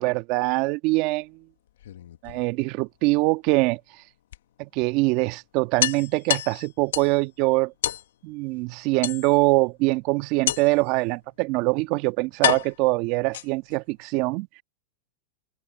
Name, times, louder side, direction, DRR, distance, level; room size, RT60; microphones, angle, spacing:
voice 1, 0.0-1.3 2.2-3.8 4.6-7.7 8.2-14.6, right 23 dB, 50° right, 1.4 m, -23 dB
sound 1, 1.7-2.8 4.3-4.4 4.8-4.9 5.2-5.3 5.8-7.2 7.8-8.1 9.0-9.6 10.5-10.9 11.7-11.8 12.4-13.8, left 12 dB, 75° left, 1.3 m, -28 dB
open air
hypercardioid pair, 120°, 0 cm